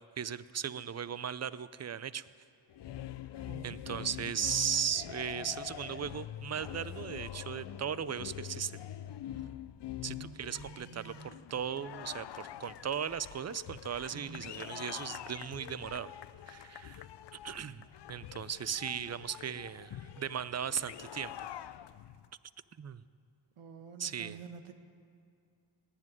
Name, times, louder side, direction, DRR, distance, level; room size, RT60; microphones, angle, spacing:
voice 1, 0.0-2.3 3.6-8.8 10.0-16.1 16.5-21.3 22.8-23.0 24.0-24.4, right 8 dB, 35° right, 17 dB, 0.5 m, -37 dB
sound 1, 2.7-22.3, left 11 dB, 60° left, 0.5 m, -45 dB
voice 2, 3.4-4.3 10.0-11.4 14.1-14.5 23.6-24.7, right 5 dB, 90° right, 7 dB, 1.1 m, -49 dB
18.0 x 7.6 x 9.7 m, 2.4 s
cardioid pair, 65°, 49 cm